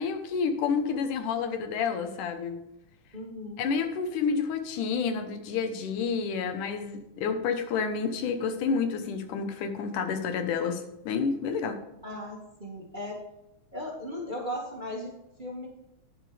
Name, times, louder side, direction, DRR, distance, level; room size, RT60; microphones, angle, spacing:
voice 1, 0.0-2.6 3.6-11.8, left 5 dB, 90° left, 8 dB, 2.6 m, -29 dB
voice 2, 3.1-3.6 12.0-13.2 13.7-15.7, left 1 dB, 20° right, -2 dB, 1.5 m, -37 dB
11.0 x 10.0 x 3.4 m, 0.89 s
omnidirectional pair, 3.5 m